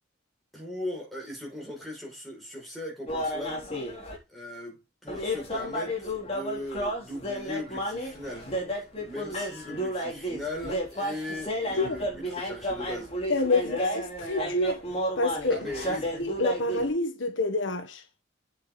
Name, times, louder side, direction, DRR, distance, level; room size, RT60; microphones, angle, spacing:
voice 1, 0.5-3.6 4.3-8.5 8.8-13.1 15.5-16.1, left 1 dB, ahead, 5.8 m, -38 dB
sound 1, 3.1-4.2 5.1-16.9, equal, 30° left, 3.8 m, -32 dB
voice 2, 13.3-14.8 15.2-15.6 16.2-18.0, left 3 dB, 80° left, 1.4 m, -27 dB
9.3 x 7.9 x 4.0 m
head